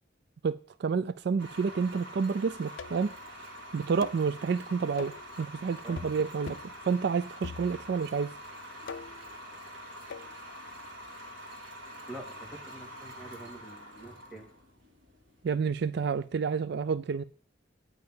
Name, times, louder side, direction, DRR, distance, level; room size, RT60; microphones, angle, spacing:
voice 1, 0.4-3.1 3.7-6.6 6.9-8.4 15.4-17.2, right 5 dB, 60° right, 0.4 m, -29 dB
sound 1, 1.4-16.3, equal, 80° right, 2.1 m, -46 dB
sound 2, 2.8-3.2 4.0-4.3 5.0-5.3 6.0-6.2 6.5-6.8 7.4-8.0 8.9-9.3 10.1-10.3, left 5 dB, 90° left, 0.5 m, -42 dB
voice 2, 12.1-14.5, right 1 dB, ahead, 2.3 m, -46 dB
9.1 x 5.5 x 7.7 m
head